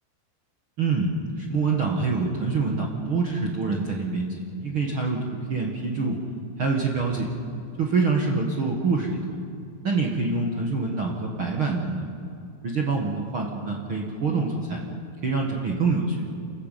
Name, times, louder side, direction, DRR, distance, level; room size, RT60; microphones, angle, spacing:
voice 1, 0.8-1.1 1.4-6.2 6.6-7.3 7.8-9.4 9.8-12.1 12.6-14.8 15.2-16.2, right 4 dB, 55° right, 0 dB, 1.5 m, -26 dB
29.5 x 14.0 x 9.1 m, 2.5 s
omnidirectional pair, 5.0 m